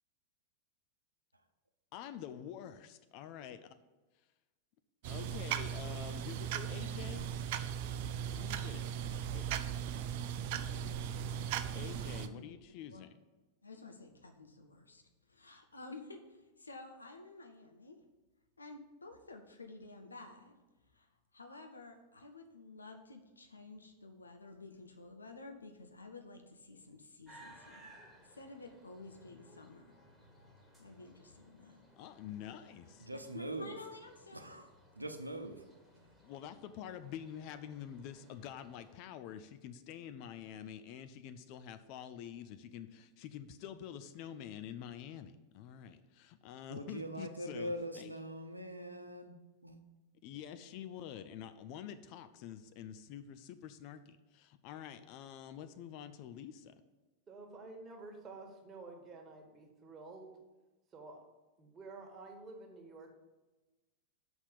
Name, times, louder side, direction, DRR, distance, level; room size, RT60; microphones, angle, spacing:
voice 1, 1.9-3.6 5.0-7.3 8.3-8.9 9.3-9.5 11.7-13.1 32.0-33.1 36.2-48.1 50.2-56.7, left 9 dB, 45° left, 10 dB, 0.5 m, -47 dB
sound 1, 5.0-12.3, right 9 dB, 50° right, 0.5 m, -38 dB
voice 2, 13.6-18.0 18.6-20.6 20.9-27.9 28.2-29.9 30.8-31.8 33.1-34.5, left 3 dB, 80° left, 6 dB, 0.9 m, -52 dB
sound 2, 27.3-39.0, right 1 dB, 5° left, 1.7 m, -61 dB
voice 3, 33.0-33.7 34.3-34.7 35.0-35.6 46.7-49.3 49.6-49.8, right 1 dB, 85° right, 6 dB, 0.7 m, -42 dB
voice 4, 57.3-60.3 60.9-61.2 61.6-63.2, right 3 dB, 25° right, 2 dB, 1.6 m, -50 dB
6.1 x 5.7 x 6.9 m, 1.2 s
figure-of-eight pair, 90°, 0 cm